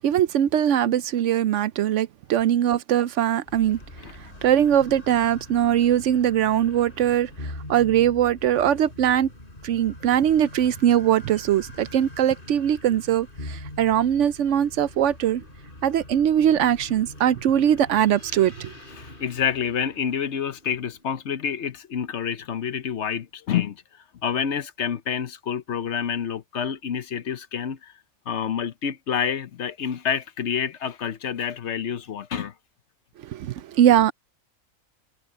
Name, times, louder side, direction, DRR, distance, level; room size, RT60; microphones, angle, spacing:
voice 1, 0.0-3.8 4.1-9.3 9.6-15.4 15.8-18.7 33.2-34.1, right 10 dB, 70° right, 0.9 m, -21 dB
sound 1, 3.5-21.4, left 1 dB, 40° left, 5.5 m, -43 dB
voice 2, 19.0-27.9 28.3-32.5, left 8 dB, 60° left, 1.1 m, -28 dB
omnidirectional pair, 1.4 m